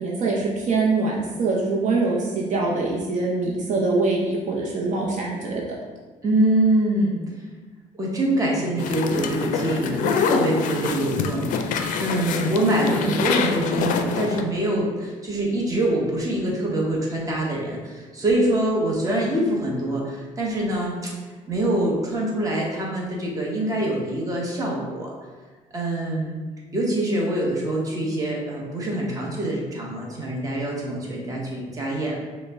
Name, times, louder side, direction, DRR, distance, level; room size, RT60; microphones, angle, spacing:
voice 1, 0.0-5.6, right 3 dB, 65° right, -2 dB, 0.7 m, -24 dB
voice 2, 6.2-7.2 7.9-21.1 21.5-25.1 25.7-26.4 26.7-32.1, right 1 dB, 25° right, -3 dB, 1.0 m, -24 dB
sound 1, 8.8-14.4, left 6 dB, 70° left, 0.4 m, -26 dB
5.3 x 2.2 x 3.5 m, 1.3 s
cardioid pair, 120°, 13 cm